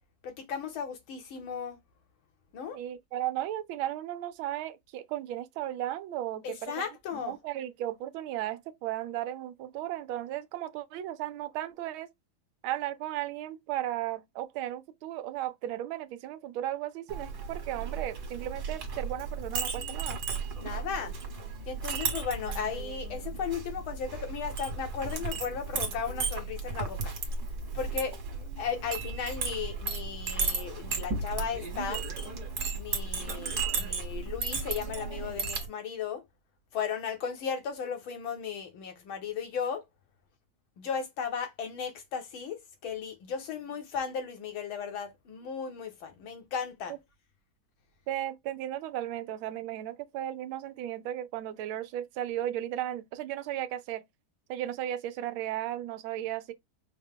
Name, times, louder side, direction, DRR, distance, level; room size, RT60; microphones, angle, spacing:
voice 1, 0.2-1.8 2.5-2.8 6.4-7.3 20.6-21.1 21.7-27.1 27.7-28.2 28.6-32.0 32.7-36.2 36.7-39.8 40.8-46.9, left 7 dB, 80° left, 2.0 m, -36 dB
voice 2, 2.7-6.8 7.1-12.1 12.6-20.2 46.9-47.0 48.1-54.0 54.5-56.5, right 13 dB, 90° right, 1.4 m, -35 dB
Chink clink, 17.1-35.7, right 4 dB, 55° right, 1.7 m, -35 dB
5.2 x 2.2 x 3.6 m
omnidirectional pair, 2.2 m